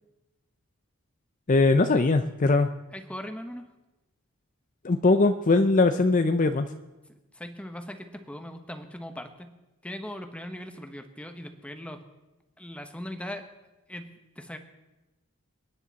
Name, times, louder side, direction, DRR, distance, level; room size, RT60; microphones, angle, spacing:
voice 1, 1.5-2.7 4.8-6.7, left 3 dB, 35° left, 8 dB, 0.5 m, -21 dB
voice 2, 2.9-3.7 7.1-9.5 9.8-12.0 12.6-13.5 13.9-14.6, left 1 dB, 5° left, 7 dB, 1.1 m, -39 dB
28.5 x 10.0 x 4.1 m, 1.1 s
head